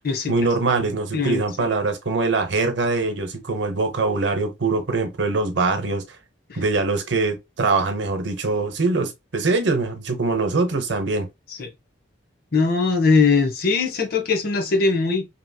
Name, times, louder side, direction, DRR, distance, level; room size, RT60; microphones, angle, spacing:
voice 1, 0.3-6.0 6.5-11.3, right 3 dB, 70° right, 0.7 m, -23 dB
voice 2, 12.5-15.3, left 4 dB, 55° left, 0.7 m, -20 dB
2.8 x 2.7 x 2.2 m
head